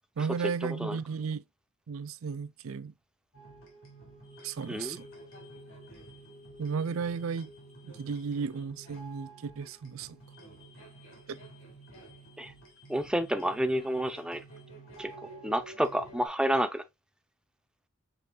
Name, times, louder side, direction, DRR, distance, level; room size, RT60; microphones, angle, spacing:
voice 1, 0.2-1.4 1.9-2.9 4.4-5.1 6.6-7.5 7.8-10.2 11.3-11.4, right 5 dB, 80° right, 0.5 m, -34 dB
sound 1, 3.3-16.3, right 2 dB, 80° left, 2.3 m, -50 dB
voice 2, 12.9-14.4 15.0-15.1 15.4-16.8, equal, 5° right, 0.6 m, -29 dB
6.8 x 3.4 x 2.3 m
head